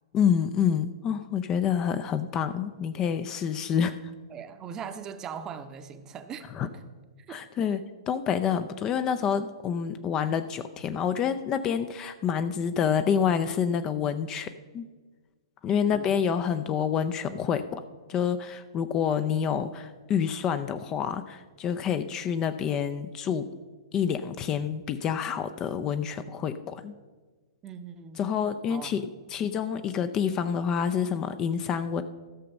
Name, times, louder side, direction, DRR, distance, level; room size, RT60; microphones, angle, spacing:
voice 1, 0.1-4.1 6.6-6.7 7.3-14.9 15.6-17.8 18.1-23.5 23.9-26.9 28.2-32.0, left 7 dB, 25° left, 10 dB, 0.5 m, -28 dB
voice 2, 4.3-6.8 7.3-7.4 15.8-16.1 27.6-28.2 28.7-29.0, right 7 dB, 20° right, 9 dB, 0.8 m, -40 dB
13.5 x 6.7 x 5.3 m, 1.4 s
figure-of-eight pair, 110°, 3 cm